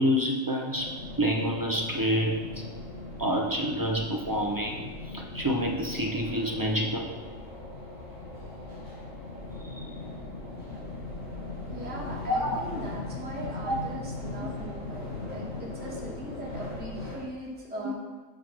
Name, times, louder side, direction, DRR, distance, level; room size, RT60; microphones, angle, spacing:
voice 1, 0.0-2.4 3.2-7.1 9.8-9.9 12.3-12.6 13.7-13.8 14.4-14.5 17.8-17.9, equal, 35° right, 0 dB, 0.3 m, -28 dB
sound 1, 0.7-17.2, left 2 dB, 80° left, 2.8 m, -39 dB
voice 2, 11.7-18.0, equal, 10° right, -4 dB, 1.1 m, -40 dB
8.3 x 3.0 x 5.9 m, 1.3 s
omnidirectional pair, 1.4 m